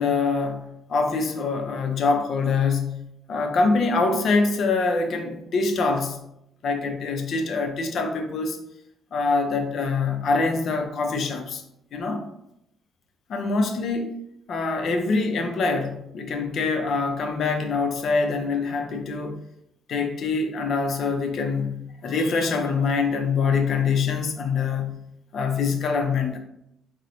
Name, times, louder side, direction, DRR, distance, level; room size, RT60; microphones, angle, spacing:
voice 1, 0.0-3.0 3.3-6.2 6.6-8.6 9.1-11.6 11.9-12.2 13.3-14.1 14.5-19.4 19.9-25.0 25.3-26.4, left 4 dB, 65° left, 5 dB, 0.5 m, -24 dB
3.7 x 2.0 x 2.9 m, 0.79 s
cardioid pair, 90°, 0 cm